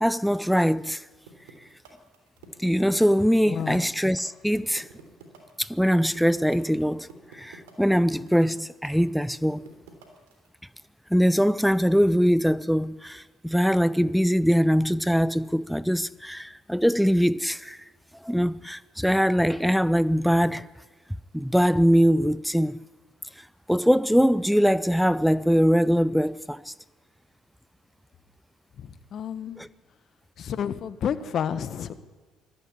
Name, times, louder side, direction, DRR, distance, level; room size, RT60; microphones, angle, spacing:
voice 1, 0.0-1.0 2.6-4.8 5.6-9.6 11.1-17.8 18.2-20.7 21.3-22.8 23.7-26.7 29.6-29.7, equal, ahead, 0.6 m, -22 dB
sound 1, 1.3-10.5, right 7 dB, 90° right, 3.3 m, -49 dB
voice 2, 3.5-3.9 28.8-29.6 30.4-31.9, left 8 dB, 55° left, 1.4 m, -30 dB
20.0 x 14.0 x 9.9 m
hypercardioid pair, 65°, 0 cm